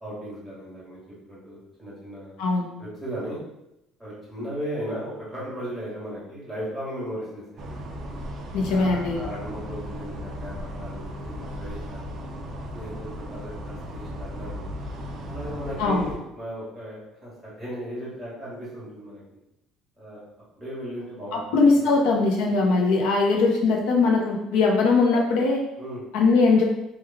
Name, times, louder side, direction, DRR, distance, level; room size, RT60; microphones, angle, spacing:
voice 1, 0.0-2.4 2.8-3.4 4.0-7.8 8.7-12.2 12.7-14.7 15.3-19.2 20.0-20.2 20.6-21.9 25.8-26.0, equal, ahead, -10 dB, 1.4 m, -36 dB
sound 1, 7.6-16.2, equal, 35° right, 0.4 m, -36 dB
voice 2, 8.5-9.2 15.8-16.1 21.3-25.6 26.1-26.6, left 3 dB, 80° left, 0 dB, 0.7 m, -20 dB
3.1 x 2.3 x 3.5 m, 0.87 s
cardioid pair, 160°, 0 cm